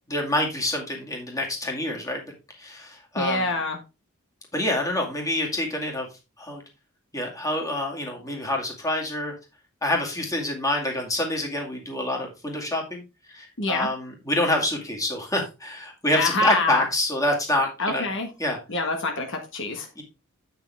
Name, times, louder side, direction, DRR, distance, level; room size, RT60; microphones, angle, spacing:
voice 1, 0.1-3.5 4.5-6.1 6.4-6.6 7.1-9.3 9.8-13.0 13.3-18.1 18.4-18.6 20.0-20.1, left 1 dB, 15° left, 0 dB, 2.2 m, -27 dB
voice 2, 3.2-3.8 13.6-13.9 16.1-16.8 17.8-18.3 18.7-19.9, left 2 dB, 60° left, 4 dB, 1.6 m, -25 dB
8.7 x 6.9 x 3.4 m, 0.27 s
head